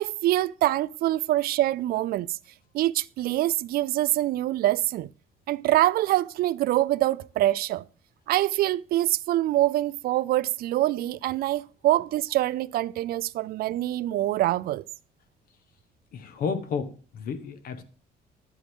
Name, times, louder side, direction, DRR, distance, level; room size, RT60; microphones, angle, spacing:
voice 1, 0.0-2.4 2.7-5.1 5.5-7.8 8.3-14.8, right 15 dB, 60° right, 0.4 m, -25 dB
voice 2, 16.1-17.8, left 5 dB, 60° left, 1.3 m, -32 dB
12.0 x 8.3 x 3.7 m
cardioid pair, 170°, 17 cm